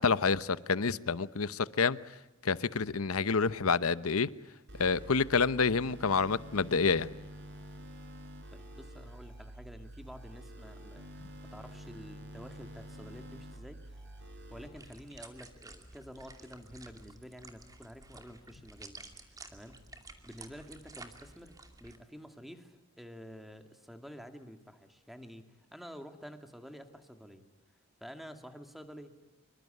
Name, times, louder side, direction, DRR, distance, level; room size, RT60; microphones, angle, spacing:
voice 1, 0.0-2.0 2.4-4.3 4.8-7.1, left 5 dB, 75° left, 0.9 m, -28 dB
sound 1, 4.7-14.7, right 1 dB, 55° right, 5.0 m, -48 dB
voice 2, 8.5-14.0 14.5-19.0 19.5-19.8 20.3-21.5 21.8-27.5 28.0-29.1, equal, ahead, 2.2 m, -49 dB
sound 2, 14.1-22.0, right 3 dB, 15° right, 2.5 m, -52 dB
26.0 x 24.0 x 9.2 m
head